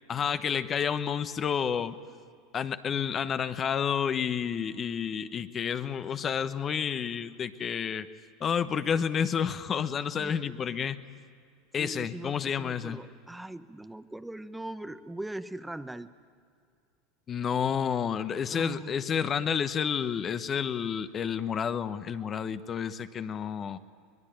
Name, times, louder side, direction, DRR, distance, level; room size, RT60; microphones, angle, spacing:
voice 1, 0.1-2.0 2.5-8.1 8.4-11.0 11.7-13.0 17.3-23.8, left 7 dB, 35° left, 11 dB, 1.0 m, -30 dB
voice 2, 10.2-10.6 11.8-16.1 18.5-19.0, right 1 dB, 5° right, 11 dB, 0.8 m, -40 dB
23.0 x 21.0 x 8.9 m, 2.3 s
hypercardioid pair, 85°, 0 cm